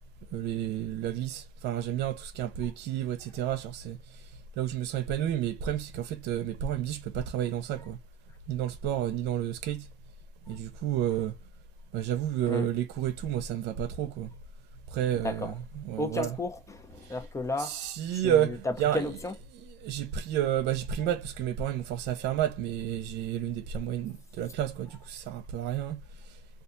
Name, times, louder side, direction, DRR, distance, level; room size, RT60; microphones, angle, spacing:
voice 1, 0.3-4.2 4.6-8.0 8.5-9.9 10.5-11.3 11.9-14.3 14.9-16.4 17.6-19.1 19.6-26.0, right 11 dB, 85° right, 0.6 m, -31 dB
voice 2, 15.1-15.5 16.0-19.3, left 2 dB, 15° left, 0.6 m, -34 dB
2.7 x 2.4 x 2.5 m
cardioid pair, 110°, 17 cm